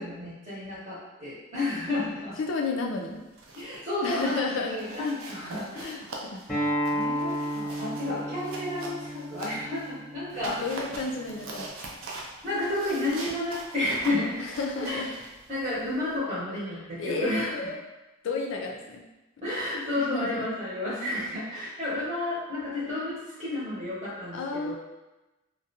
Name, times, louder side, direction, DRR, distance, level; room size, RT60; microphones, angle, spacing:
voice 1, 0.0-2.4 3.5-6.1 6.9-10.8 12.4-14.4 14.8-15.1 15.5-17.6 19.4-24.7, left 2 dB, 30° right, -10 dB, 0.8 m, -31 dB
voice 2, 2.4-3.3 4.0-4.8 5.7-6.4 8.3-8.4 10.3-11.7 14.6-15.1 17.0-17.8 18.2-19.0 20.0-20.5 24.3-24.7, left 3 dB, 60° left, 1 dB, 0.4 m, -32 dB
sound 1, 3.2-3.8 4.1-4.4 4.8-9.9 10.3-16.2, right 2 dB, 70° right, 0.4 m, -43 dB
Acoustic guitar, 6.5-11.7, equal, 5° left, 0.8 m, -33 dB
2.3 x 2.1 x 2.7 m, 1.1 s
head